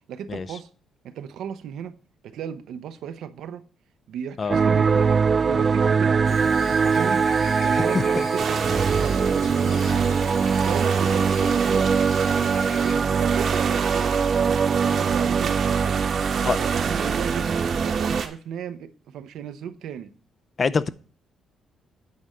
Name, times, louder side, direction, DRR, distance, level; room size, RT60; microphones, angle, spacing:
voice 1, 0.1-0.7 1.0-2.0 2.2-3.6 4.1-11.9 12.6-14.2 14.4-17.5 17.8-20.1, right 9 dB, 80° right, 0.7 m, -35 dB
sound 1, 4.5-18.2, right 5 dB, 40° right, 0.3 m, -22 dB
Chirp tweet / Buzz, 6.2-12.9, left 4 dB, 70° left, 2.0 m, -40 dB
sound 2, 8.4-18.3, right 6 dB, 65° right, 1.1 m, -32 dB
voice 2, 20.6-20.9, left 5 dB, 40° left, 0.5 m, -23 dB
9.5 x 4.2 x 5.0 m
cardioid pair, 90°, 0 cm